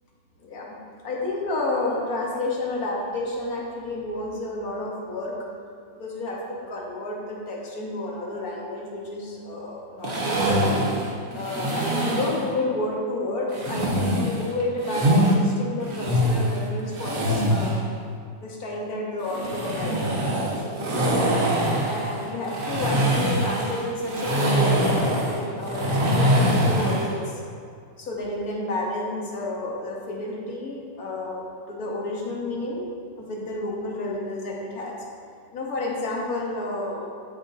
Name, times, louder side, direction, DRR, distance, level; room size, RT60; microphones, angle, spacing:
voice 1, 0.4-0.8 1.0-5.5 5.9-10.7 11.3-17.8 18.4-21.2 21.9-27.4 28.0-32.9 33.2-35.0 35.5-37.0, left 2 dB, 70° left, -2 dB, 1.6 m, -30 dB
sound 1, 10.0-12.4 13.5-15.3 15.8-17.8 19.2-27.1, equal, 60° right, 1.5 m, -23 dB
8.1 x 7.0 x 2.7 m, 2.3 s
omnidirectional pair, 1.6 m